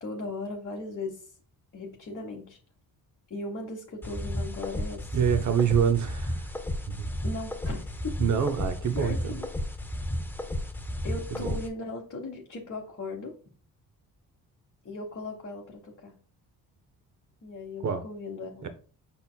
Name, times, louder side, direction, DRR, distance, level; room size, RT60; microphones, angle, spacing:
voice 1, 0.0-1.3 1.7-2.6 3.3-5.1 7.2-8.2 8.9-9.5 9.9-10.0 11.0-13.3 14.8-16.1 17.4-18.7, left 2 dB, 35° left, -1 dB, 1.0 m, -37 dB
sound 1, 4.0-11.7, left 1 dB, 5° left, 0.5 m, -33 dB
voice 2, 5.1-6.5 6.9-7.1 8.2-9.4 11.3-11.6 17.8-18.0 18.6-18.7, right 7 dB, 45° right, 10 dB, 0.8 m, -26 dB
5.6 x 4.1 x 2.2 m, 0.40 s
supercardioid pair, 70°, 40 cm